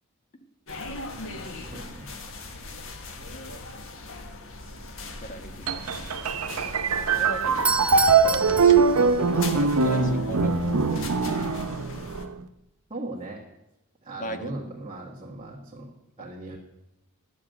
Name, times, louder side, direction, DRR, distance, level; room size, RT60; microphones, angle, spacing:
sound 1, 0.7-12.3, left 2 dB, 65° left, 1.4 m, -40 dB
voice 1, 1.3-2.5 7.0-7.1 12.9-13.4 14.0-16.6, right 2 dB, 30° right, -4 dB, 1.7 m, -39 dB
voice 2, 4.9-5.7 7.1-8.0 8.3-11.4 14.2-14.5, equal, 35° left, 6 dB, 1.3 m, -38 dB
sound 2, 5.7-12.4, right 5 dB, 85° right, 0.8 m, -22 dB
Doorbell, 7.5-9.5, right 4 dB, 5° right, 0.4 m, -29 dB
10.5 x 7.4 x 9.2 m, 0.91 s
head